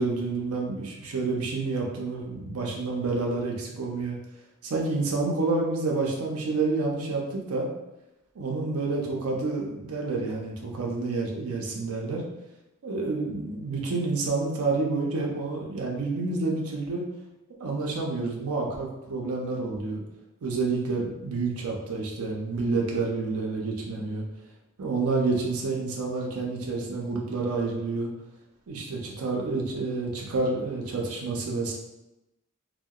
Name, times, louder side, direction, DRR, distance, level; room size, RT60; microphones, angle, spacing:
voice 1, 0.0-4.2 4.6-7.7 8.4-12.2 12.8-17.0 17.6-20.0 20.4-24.2 24.8-28.1 28.7-31.7, right 3 dB, 80° right, -2 dB, 0.5 m, -29 dB
2.7 x 2.1 x 2.3 m, 0.94 s
head